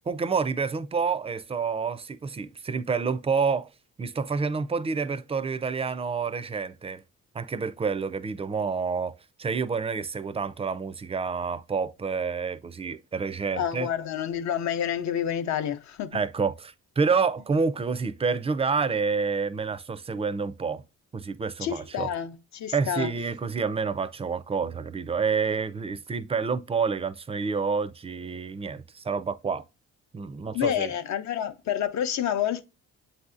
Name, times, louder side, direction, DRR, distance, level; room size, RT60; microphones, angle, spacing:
voice 1, 0.1-3.7 4.0-7.0 7.3-13.9 16.1-20.8 21.1-22.1 22.7-29.6 30.1-30.9, right 5 dB, 20° right, 0.3 m, -28 dB
voice 2, 13.6-16.2 21.6-23.1 30.5-32.6, left 9 dB, 65° left, 0.6 m, -29 dB
7.6 x 2.7 x 2.4 m
cardioid pair, 90°, 30 cm